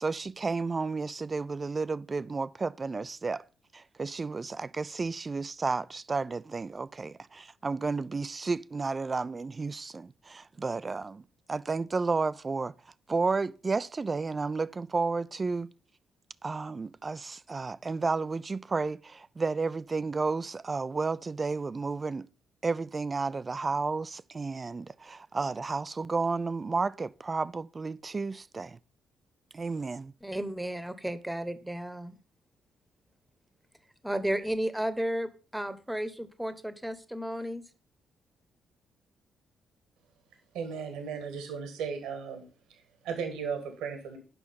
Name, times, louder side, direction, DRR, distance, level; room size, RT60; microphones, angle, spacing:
voice 1, 0.0-3.4 3.7-11.2 11.5-12.7 13.1-15.7 16.4-22.3 22.6-28.8 29.5-30.1, right 4 dB, 35° right, 0.4 m, -32 dB
voice 2, 30.2-32.2 34.0-37.6, right 1 dB, 5° right, 1.2 m, -33 dB
voice 3, 40.5-42.4 42.7-44.2, right 6 dB, 70° right, 1.5 m, -36 dB
9.4 x 5.9 x 5.4 m
figure-of-eight pair, 40°, 0 cm